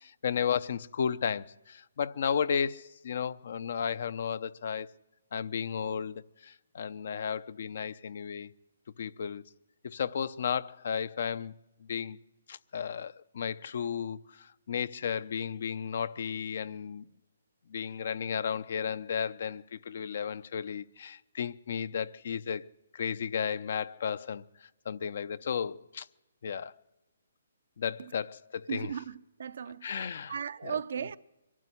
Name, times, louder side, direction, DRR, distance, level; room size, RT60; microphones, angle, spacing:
voice 1, 0.0-4.9 5.3-8.5 9.0-9.4 9.8-11.5 11.9-12.2 12.5-17.1 17.7-26.1 26.4-26.7 27.8-28.9 29.8-30.4 30.6-30.8, left 7 dB, 60° left, 0.7 m, -34 dB
voice 2, 28.7-31.2, right 8 dB, 65° right, 0.7 m, -37 dB
23.0 x 12.5 x 9.8 m
hypercardioid pair, 150°, 0 cm